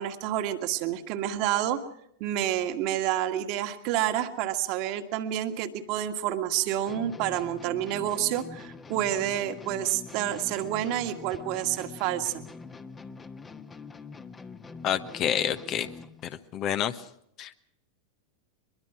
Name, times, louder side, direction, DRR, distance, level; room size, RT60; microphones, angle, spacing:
voice 1, 0.0-1.8 2.2-12.4, right 12 dB, 45° right, 7 dB, 1.8 m, -29 dB
sound 1, 6.8-16.3, left 4 dB, 15° left, 1.4 m, -44 dB
voice 2, 14.8-15.9 16.2-17.0 17.4-17.5, left 10 dB, 35° left, 11 dB, 1.1 m, -28 dB
23.0 x 22.0 x 6.0 m, 0.72 s
figure-of-eight pair, 90°, 0 cm